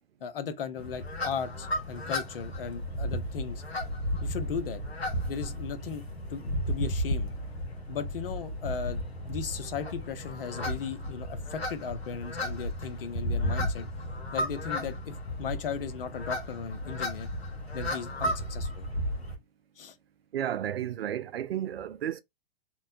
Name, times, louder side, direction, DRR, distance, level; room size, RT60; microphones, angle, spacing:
voice 1, 0.2-3.6 4.2-4.8 5.3-6.0 6.3-7.3 7.9-9.0 9.3-13.9 14.3-17.3 17.7-18.9 19.8-20.0, left 7 dB, 65° left, 0.7 m, -37 dB
sound 1, 0.8-19.4, equal, 90° left, 1.0 m, -34 dB
voice 2, 20.3-22.2, right 10 dB, 75° right, 0.5 m, -32 dB
3.0 x 2.1 x 2.6 m
figure-of-eight pair, 115°, 30 cm